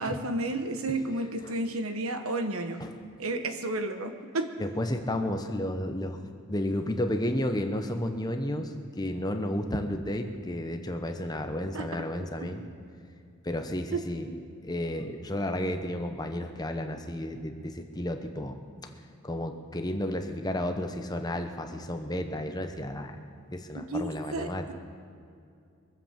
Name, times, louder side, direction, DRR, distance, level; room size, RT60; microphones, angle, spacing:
voice 1, 0.0-2.8 3.2-4.5 11.7-11.9 13.9-14.0 23.7-24.7, right 2 dB, 80° right, 7 dB, 1.3 m, -32 dB
voice 2, 4.6-6.2 6.5-12.6 13.4-18.6 19.2-23.2 23.5-24.7, left 1 dB, 20° left, 6 dB, 1.0 m, -32 dB
22.5 x 7.9 x 7.4 m, 2.4 s
head